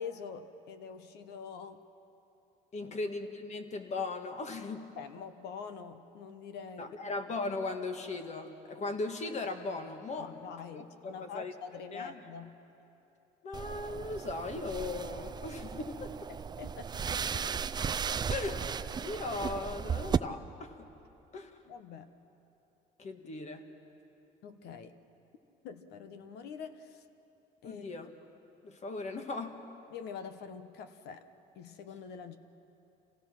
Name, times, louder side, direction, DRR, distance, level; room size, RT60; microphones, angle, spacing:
voice 1, 0.0-1.8 2.8-2.9 5.0-7.1 10.2-12.6 16.3-17.5 21.6-22.1 24.4-24.9 25.6-27.1 27.6-27.8 29.9-31.3 31.5-32.4, left 6 dB, 80° left, 10 dB, 1.1 m, -45 dB
voice 2, 2.7-4.9 6.8-10.3 10.7-11.5 11.9-12.2 13.4-16.1 18.3-18.6 19.0-20.9 21.3-21.6 23.0-23.6 27.6-28.1 28.6-29.6, left 3 dB, 40° left, 6 dB, 1.6 m, -38 dB
sound 1, 13.5-20.2, right 6 dB, 25° right, 0.4 m, -35 dB
27.0 x 17.0 x 6.0 m, 2.9 s
cardioid pair, 110°, 17 cm